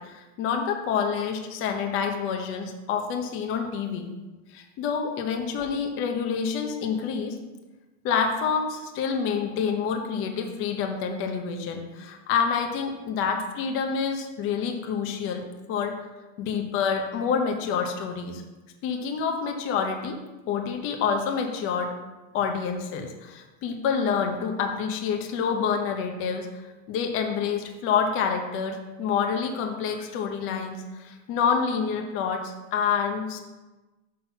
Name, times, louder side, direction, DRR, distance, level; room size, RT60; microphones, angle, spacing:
voice 1, 0.0-4.1 4.5-7.4 8.0-16.0 16.4-18.4 18.8-20.2 20.5-22.0 22.3-26.5 26.9-33.4, left 6 dB, 30° left, 3 dB, 0.8 m, -27 dB
6.2 x 6.1 x 5.7 m, 1.1 s
supercardioid pair, 165°, 40 cm